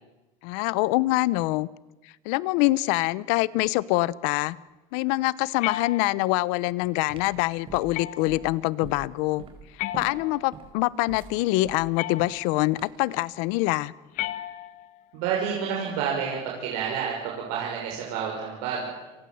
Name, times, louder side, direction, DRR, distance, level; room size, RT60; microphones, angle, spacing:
voice 1, 0.4-1.7 2.0-4.6 4.9-9.4 9.9-13.9, left 19 dB, 80° left, 21 dB, 0.9 m, -25 dB
sound 1, 5.6-6.5 7.9-8.5 9.8-10.7 12.0-12.7 14.1-15.0, left 14 dB, 65° left, 1.4 m, -35 dB
sound 2, 6.6-13.1, right 5 dB, 40° right, 5.1 m, -44 dB
voice 2, 15.1-18.9, right 7 dB, 80° right, -2 dB, 6.2 m, -29 dB
29.0 x 23.0 x 7.9 m, 1.1 s
cardioid pair, 135°, 14 cm